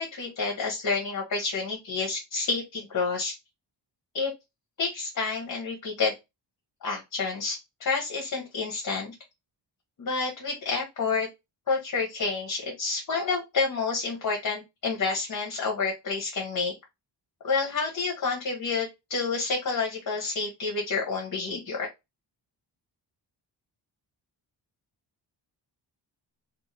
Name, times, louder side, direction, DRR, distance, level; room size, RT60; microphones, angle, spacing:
voice 1, 0.0-3.3 4.1-4.3 4.8-6.1 6.8-9.1 10.0-11.3 11.7-16.7 17.4-21.9, left 4 dB, 45° left, 0 dB, 0.9 m, -29 dB
2.6 x 2.4 x 3.1 m, 0.22 s
wide cardioid pair, 100°, 44 cm